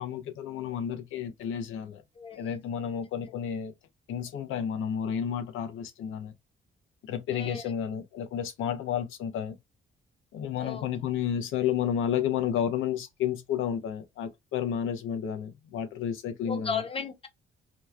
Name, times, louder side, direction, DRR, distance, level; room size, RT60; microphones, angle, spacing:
voice 1, 0.0-2.0 2.4-3.7 4.1-6.3 7.0-9.6 10.3-16.8, left 9 dB, 80° left, 0.8 m, -31 dB
voice 2, 2.2-2.5 7.3-7.6 10.6-10.8 16.5-17.3, left 5 dB, 30° left, 0.9 m, -34 dB
3.0 x 2.3 x 3.4 m
cardioid pair, 90°, 20 cm